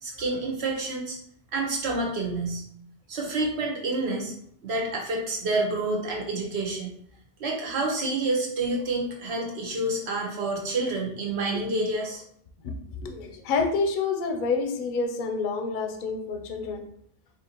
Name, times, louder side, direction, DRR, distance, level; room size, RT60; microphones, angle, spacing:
voice 1, 0.0-1.2 1.5-2.6 3.1-4.3 4.6-6.9 7.4-12.2, right 2 dB, 80° right, 0 dB, 1.2 m, -28 dB
voice 2, 13.0-16.8, left 4 dB, 60° left, 4 dB, 0.6 m, -28 dB
4.3 x 2.6 x 2.9 m, 0.68 s
omnidirectional pair, 1.1 m